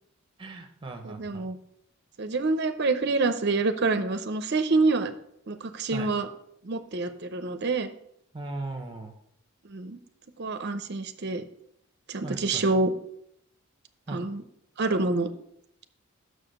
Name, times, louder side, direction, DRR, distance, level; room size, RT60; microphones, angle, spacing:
voice 1, 0.4-1.4 5.9-6.1 8.3-9.1 12.2-12.6 14.1-14.2, right 2 dB, 25° right, 5 dB, 1.0 m, -37 dB
voice 2, 1.0-1.6 2.2-5.1 5.5-6.3 6.6-7.9 9.7-10.0 10.4-11.4 12.1-12.9 14.1-14.4 14.8-15.3, right 3 dB, 50° right, 9 dB, 0.6 m, -27 dB
6.5 x 4.9 x 6.4 m, 0.73 s
head